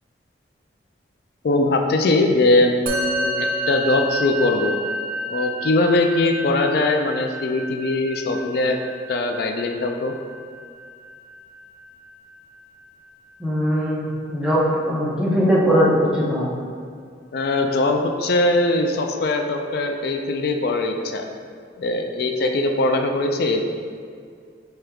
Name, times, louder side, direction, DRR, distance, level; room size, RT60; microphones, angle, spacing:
voice 1, 1.4-4.8 5.3-8.8 9.1-10.1 17.3-21.3 21.8-23.6, left 2 dB, 55° left, 4 dB, 0.3 m, -21 dB
Musical instrument, 2.9-12.4, equal, 45° right, 0.4 m, -30 dB
voice 2, 13.4-16.5, equal, 5° right, -7 dB, 0.7 m, -20 dB
4.9 x 4.4 x 2.3 m, 2.2 s
head